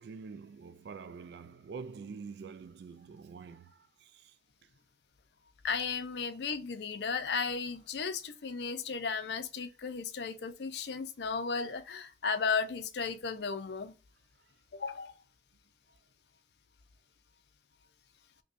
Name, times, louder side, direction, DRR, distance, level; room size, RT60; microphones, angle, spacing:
voice 1, 0.0-4.3, right 5 dB, 65° right, 0.3 m, -46 dB
voice 2, 5.6-13.9 14.7-15.1, left 5 dB, 65° left, 0.5 m, -35 dB
5.2 x 2.2 x 2.5 m
head